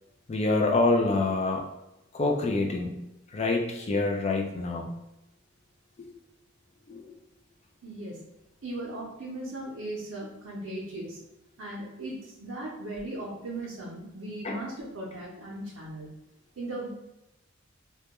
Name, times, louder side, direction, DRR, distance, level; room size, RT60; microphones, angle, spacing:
voice 1, 0.3-1.6 2.1-3.0 3.3-4.9 6.9-7.0 14.4-14.6, left 2 dB, 30° left, 1 dB, 0.4 m, -26 dB
voice 2, 7.8-8.3 8.6-11.2 11.6-16.1 16.6-16.9, right 1 dB, 90° right, -5 dB, 0.6 m, -37 dB
2.2 x 2.1 x 2.8 m, 0.92 s
head